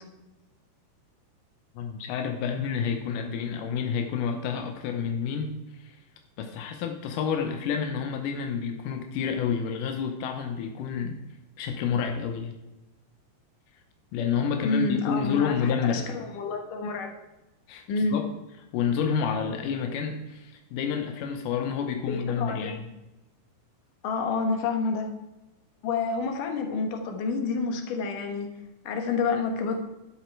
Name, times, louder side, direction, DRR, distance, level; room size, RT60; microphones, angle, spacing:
voice 1, 1.7-6.0 6.4-11.2 11.6-12.5 14.1-16.1 17.7-17.8 18.1-18.2 18.7-22.8, left 7 dB, 80° left, 4 dB, 1.9 m, -29 dB
voice 2, 14.6-17.2 17.9-18.2 22.1-22.8 24.0-25.1 25.8-28.5 28.8-29.8, left 4 dB, 65° left, 4 dB, 2.4 m, -29 dB
12.0 x 8.3 x 4.6 m, 1.0 s
omnidirectional pair, 4.9 m